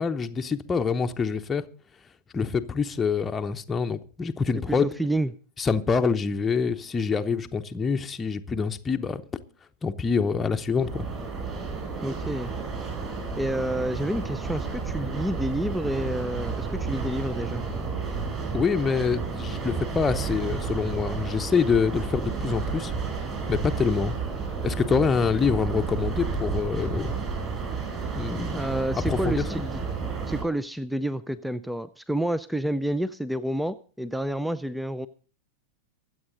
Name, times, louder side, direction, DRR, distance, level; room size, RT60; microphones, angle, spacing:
voice 1, 0.0-1.6 2.3-4.9 5.6-9.2 9.8-11.1 18.5-22.9 23.5-24.1 24.6-27.2 28.1-28.7 29.1-29.6, left 5 dB, 15° left, 0.8 m, -26 dB
voice 2, 4.6-5.3 12.0-12.5 13.4-17.6 28.5-29.8 30.3-35.1, right 1 dB, ahead, 0.5 m, -29 dB
sound 1, 10.7-30.4, right 5 dB, 25° right, 6.9 m, -31 dB
23.5 x 7.9 x 3.9 m
figure-of-eight pair, 90°, 0 cm